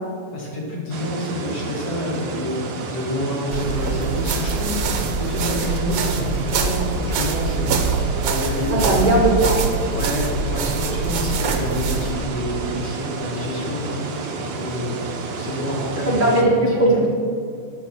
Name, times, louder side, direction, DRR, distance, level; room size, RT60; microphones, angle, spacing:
voice 1, 0.3-2.7 2.9-9.0 9.9-14.9 15.4-17.0, left 1 dB, 50° left, -4 dB, 2.9 m, -28 dB
sound 1, 0.9-16.4, right 3 dB, 60° right, 1.6 m, -31 dB
sound 2, 3.5-12.1, right 4 dB, 80° right, 1.8 m, -24 dB
voice 2, 8.7-9.6 16.1-17.1, right 2 dB, 20° right, -5 dB, 2.4 m, -18 dB
8.9 x 5.4 x 8.0 m, 2.4 s
omnidirectional pair, 2.4 m